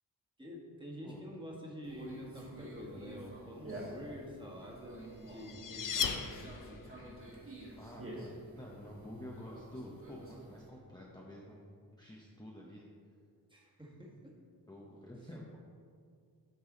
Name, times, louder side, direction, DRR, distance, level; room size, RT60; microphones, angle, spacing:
voice 1, 0.4-6.3 13.5-14.3, equal, 10° right, -3 dB, 1.6 m, -48 dB
Conversation, 1.8-10.7, right 1 dB, 35° right, 1.7 m, -49 dB
sound 1, 4.9-7.0, left 7 dB, 50° left, 0.6 m, -37 dB
voice 2, 7.8-11.7 11.9-12.9 14.7-15.6, left 1 dB, 10° left, -3 dB, 0.8 m, -49 dB
8.2 x 4.7 x 3.9 m, 2.2 s
cardioid pair, 60°, 40 cm